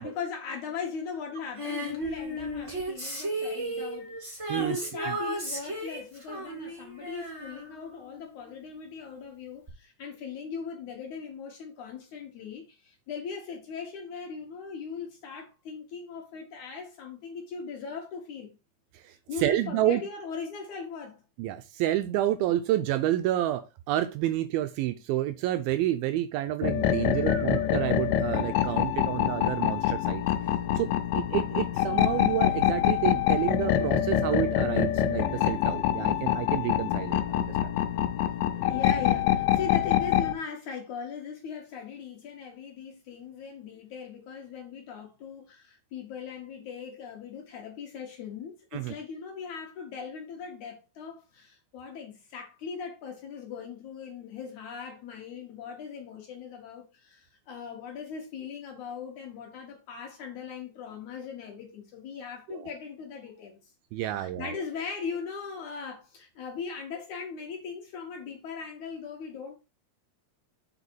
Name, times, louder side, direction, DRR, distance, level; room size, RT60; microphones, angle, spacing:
voice 1, 0.0-4.2 4.6-18.6 19.3-21.2 27.0-27.6 38.5-63.7 64.0-69.5, left 6 dB, 65° left, 2.1 m, -39 dB
Female singing, 1.6-8.5 9.7-9.8, right 1 dB, 20° right, 0.8 m, -35 dB
voice 2, 18.9-20.0 21.4-30.2 30.8-37.7 48.7-48.9 62.5-62.7 63.9-64.6, right 13 dB, 80° right, 2.2 m, -29 dB
sound 1, 26.6-40.3, left 11 dB, 85° left, 2.7 m, -26 dB
6.9 x 4.7 x 4.5 m
omnidirectional pair, 4.6 m